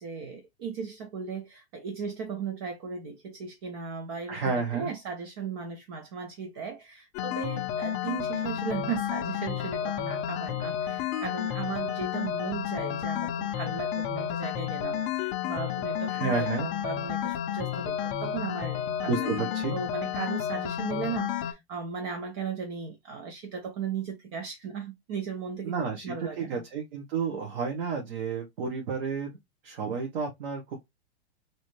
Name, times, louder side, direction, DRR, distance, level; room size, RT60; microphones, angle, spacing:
voice 1, 0.0-26.6, right 6 dB, 25° right, 0.3 m, -37 dB
voice 2, 4.3-4.9 16.1-16.7 19.0-19.7 25.6-29.4 29.6-30.9, right 5 dB, 60° right, 1.3 m, -31 dB
sound 1, 7.1-21.5, left 10 dB, 30° left, 0.5 m, -31 dB
3.1 x 2.7 x 3.1 m
hypercardioid pair, 140°, 33 cm